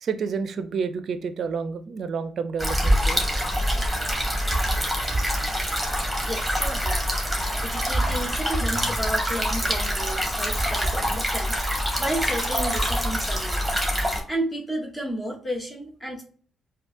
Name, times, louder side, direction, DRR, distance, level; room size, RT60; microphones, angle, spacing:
voice 1, 0.0-3.5, right 5 dB, 60° right, 0.5 m, -30 dB
sound 1, 2.6-14.2, equal, ahead, 1.8 m, -25 dB
voice 2, 6.2-7.0 7.6-11.6 12.0-13.6 14.3-16.2, right 1 dB, 20° left, 1.5 m, -32 dB
4.9 x 2.3 x 2.5 m
supercardioid pair, 55°, 0 cm